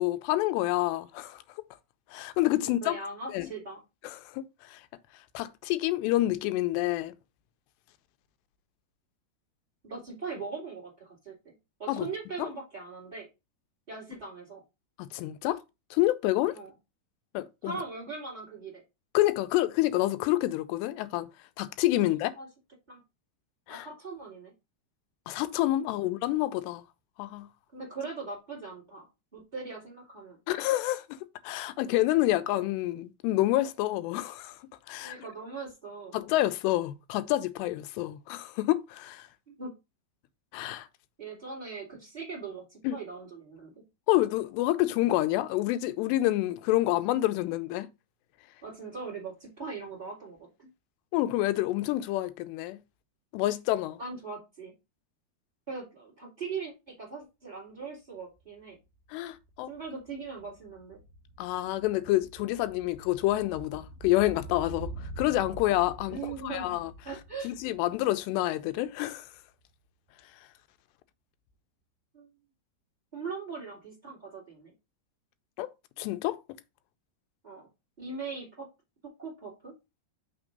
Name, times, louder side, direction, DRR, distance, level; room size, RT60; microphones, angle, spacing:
voice 1, 0.0-1.4 2.1-3.0 3.3-3.5 4.0-4.8 5.3-7.1 11.9-12.1 12.4-12.5 15.0-15.6 15.9-16.6 17.3-17.8 19.1-21.3 21.6-22.3 23.7-23.9 25.3-26.8 27.2-27.5 30.5-31.2 31.4-34.6 34.9-35.2 36.1-39.3 40.5-40.9 42.8-43.0 44.1-47.9 51.1-52.8 53.3-54.0 59.1-59.7 61.4-66.9 67.4-69.3 75.6-75.7 76.0-76.4, left 16 dB, 85° left, 2.7 m, -28 dB
voice 2, 2.6-3.8 9.8-11.5 11.8-13.3 13.9-14.6 16.5-16.7 17.6-18.8 22.0-22.5 22.9-23.0 23.7-24.5 26.0-26.1 27.7-30.4 35.0-36.1 39.5-39.7 41.2-43.7 48.6-50.7 54.0-54.7 55.7-58.8 59.7-61.0 66.1-66.7 67.0-67.5 72.1-72.3 73.1-74.7 77.4-77.7 78.0-78.7 79.2-79.7, right 4 dB, 15° right, 1.8 m, -40 dB
sound 1, 58.4-58.5 58.7-69.1 69.4-69.5, right 1 dB, 70° right, 2.7 m, -45 dB
6.0 x 3.5 x 5.1 m
omnidirectional pair, 4.9 m